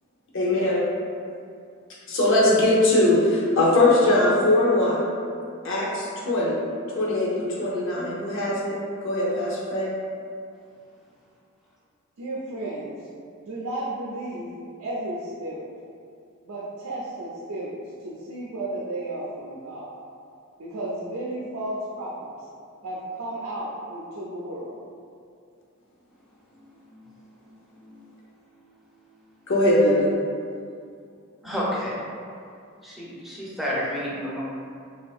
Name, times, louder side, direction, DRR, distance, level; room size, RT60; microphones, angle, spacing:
voice 1, 0.3-0.8 2.1-5.0 5.6-6.6 6.9-8.8 9.0-9.9 29.5-30.1, left 1 dB, 65° left, -5 dB, 0.6 m, -21 dB
voice 2, 12.2-13.0 13.4-14.5 14.8-15.7 16.4-20.0 20.6-22.3 22.8-24.8, right 1 dB, 90° right, -6 dB, 0.4 m, -33 dB
voice 3, 31.4-31.9 32.8-34.4, equal, ahead, -7 dB, 0.4 m, -30 dB
2.6 x 2.2 x 2.4 m, 2.4 s
head